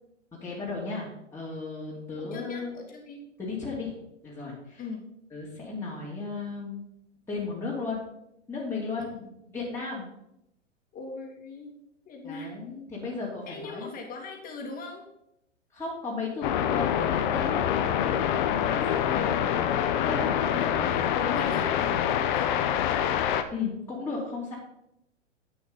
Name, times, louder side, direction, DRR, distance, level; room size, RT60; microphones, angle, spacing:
voice 1, 0.3-2.7 3.4-4.0 4.2-4.8 5.3-6.8 7.3-8.0 8.5-9.0 9.5-10.1 12.2-13.9 15.7-20.9 21.1-21.9 23.5-24.5, left 4 dB, 5° left, -8 dB, 2.8 m, -35 dB
voice 2, 2.2-3.2 4.8-5.0 9.0-9.3 10.9-11.7 12.0-12.6 13.4-15.1 20.6-22.5, left 3 dB, 20° left, 2 dB, 2.5 m, -40 dB
sound 1, 16.4-23.4, left 10 dB, 40° left, 0.9 m, -26 dB
10.5 x 8.7 x 4.0 m, 0.80 s
figure-of-eight pair, 110°, 37 cm